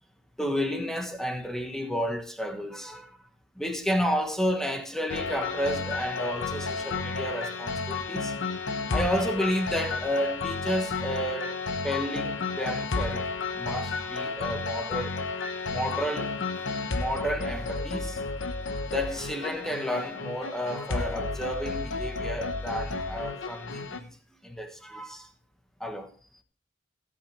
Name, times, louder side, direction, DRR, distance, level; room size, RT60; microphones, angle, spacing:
voice 1, 0.4-3.2 3.5-8.3 8.9-11.6 11.8-13.2 13.5-15.2 15.7-18.2 18.9-24.2 24.4-25.3 25.8-26.1, equal, 5° left, 1.4 m, -31 dB
sound 1, 5.1-24.0, left 3 dB, 90° left, 1.1 m, -32 dB
17.5 x 8.2 x 3.4 m
head